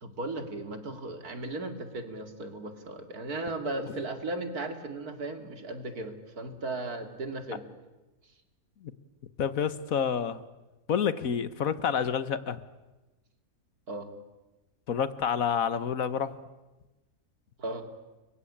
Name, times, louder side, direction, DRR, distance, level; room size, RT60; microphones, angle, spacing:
voice 1, 0.0-7.6 13.9-14.1 17.6-17.9, right 2 dB, 85° right, 7 dB, 3.0 m, -36 dB
voice 2, 9.4-10.4 10.9-12.6 14.9-16.4, left 7 dB, 65° left, 15 dB, 1.5 m, -28 dB
29.5 x 23.0 x 8.7 m, 1.1 s
omnidirectional pair, 1.6 m